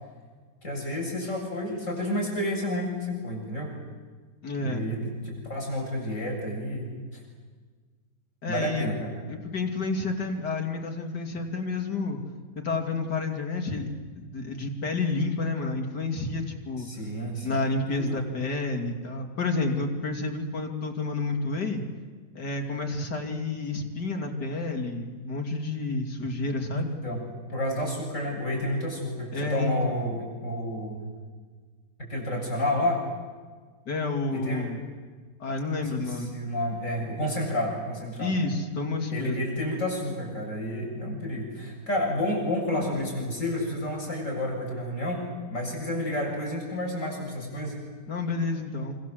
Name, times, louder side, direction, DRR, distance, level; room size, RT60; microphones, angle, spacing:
voice 1, 0.6-3.7 4.6-7.2 8.4-9.2 16.8-17.6 17.9-18.2 26.7-31.0 32.0-33.0 34.3-34.7 35.8-38.3 39.1-47.8, left 1 dB, 50° left, -1 dB, 8.1 m, -30 dB
voice 2, 4.4-4.9 8.4-8.9 9.3-12.2 12.6-13.9 14.2-16.9 17.4-21.8 22.4-26.9 29.3-29.8 33.9-34.8 35.4-36.3 38.2-39.4 48.1-49.0, left 3 dB, 80° left, 3 dB, 3.4 m, -30 dB
27.5 x 26.0 x 7.9 m, 1.5 s
omnidirectional pair, 1.8 m